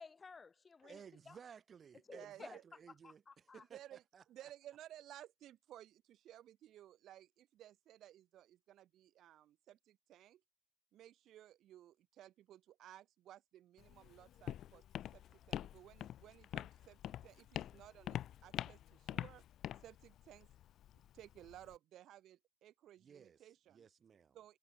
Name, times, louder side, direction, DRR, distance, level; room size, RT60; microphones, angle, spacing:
voice 1, 0.0-1.4 2.0-2.6 2.9-3.6, left 4 dB, 25° left, 2.5 m, -55 dB
voice 2, 0.9-3.2 3.5-4.2 23.0-23.4 23.7-24.4, right 7 dB, 35° right, 3.0 m, -57 dB
voice 3, 2.1-2.6 3.7-4.0 4.3-10.4 10.9-14.8 15.1-19.4 19.8-20.5 20.9-23.9 24.3-24.6, right 12 dB, 55° right, 5.0 m, -58 dB
Walk footsteps, 13.8-21.8, left 11 dB, 55° left, 0.7 m, -46 dB
supercardioid pair, 90°, 0 cm